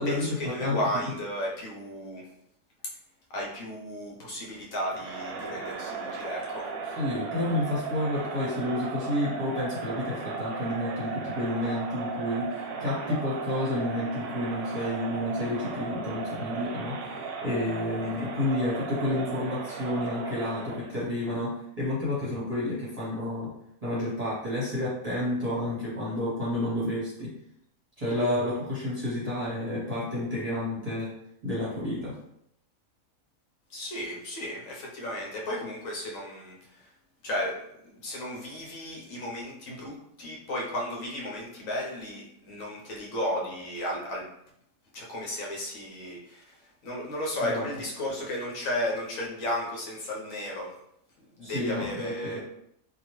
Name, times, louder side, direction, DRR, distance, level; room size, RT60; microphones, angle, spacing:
voice 1, 0.1-2.3 3.3-6.7 18.0-18.3 33.7-36.9 37.2-44.3 44.9-50.7 51.4-52.4, left 1 dB, 70° left, -3 dB, 1.1 m, -34 dB
Crowd, 4.8-21.0, right 5 dB, 65° right, 0.8 m, -36 dB
voice 2, 7.0-17.1 17.4-23.5 23.8-27.3 28.0-31.1 31.4-32.1 47.4-47.6 51.4-52.4, left 1 dB, 30° right, -8 dB, 0.8 m, -30 dB
2.8 x 2.2 x 3.0 m, 0.75 s
omnidirectional pair, 1.5 m